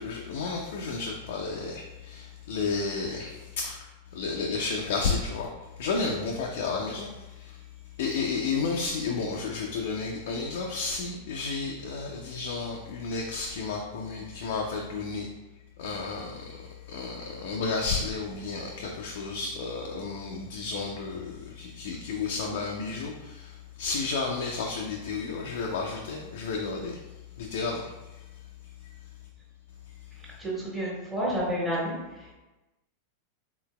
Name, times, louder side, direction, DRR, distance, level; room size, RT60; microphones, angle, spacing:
voice 1, 0.0-3.8 4.1-5.5 5.8-7.6 8.0-15.3 15.8-27.0 27.4-27.9, left 4 dB, 55° left, -1 dB, 0.4 m, -32 dB
voice 2, 30.4-31.9 32.2-32.3, equal, 20° right, -7 dB, 1.5 m, -30 dB
4.0 x 3.9 x 2.2 m, 1.1 s
figure-of-eight pair, 90°, 0 cm